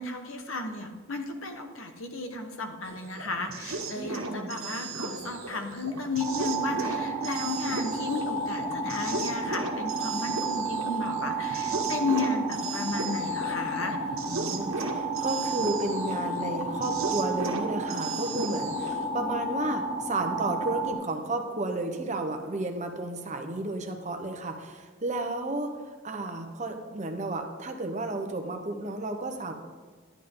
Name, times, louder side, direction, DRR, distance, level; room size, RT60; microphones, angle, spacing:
voice 1, 0.0-14.0, left 3 dB, 70° left, 5 dB, 1.2 m, -33 dB
sound 1, 2.8-19.1, right 3 dB, 75° right, 1.4 m, -36 dB
voice 2, 3.9-4.7 14.3-25.7 26.0-29.5, right 2 dB, 35° right, 4 dB, 0.9 m, -32 dB
sound 2, 6.2-20.9, right 2 dB, 15° right, 2.1 m, -32 dB
11.0 x 10.0 x 3.8 m, 1.5 s
head